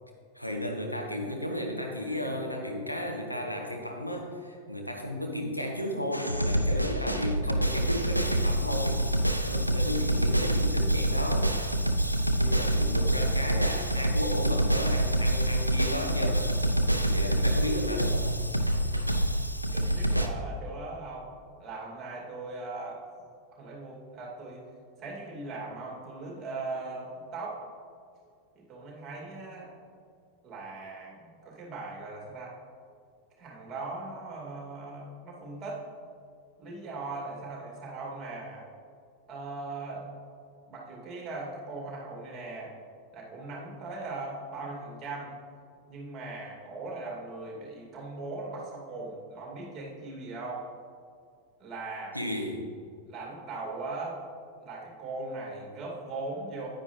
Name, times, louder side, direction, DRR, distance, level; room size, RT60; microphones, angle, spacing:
voice 1, 0.3-9.0 9.4-11.5 12.4-16.6 17.0-18.2 52.1-52.7, left 1 dB, 90° left, 1 dB, 1.1 m, -34 dB
sound 1, 6.1-20.3, right 1 dB, 90° right, 0.5 m, -26 dB
voice 2, 19.7-21.3 21.6-23.0 23.5-24.6 25.0-27.6 28.6-29.7 30.4-32.6 33.4-35.8 36.6-38.7 39.3-40.0 40.7-42.7 43.1-45.3 45.9-50.7 51.6-52.2 53.1-54.2 54.6-56.7, right 3 dB, 25° right, -3 dB, 2.4 m, -39 dB
9.6 x 9.1 x 3.1 m, 2.2 s
figure-of-eight pair, 90°, 0 cm